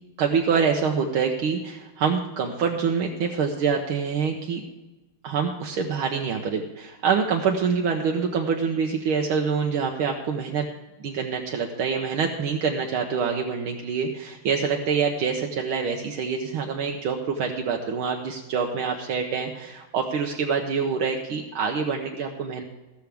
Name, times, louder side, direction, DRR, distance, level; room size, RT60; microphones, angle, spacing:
voice 1, 0.2-4.6 5.2-10.6 11.0-22.6, right 6 dB, 75° right, 2 dB, 1.7 m, -26 dB
14.5 x 12.5 x 3.5 m, 1.1 s
omnidirectional pair, 2.4 m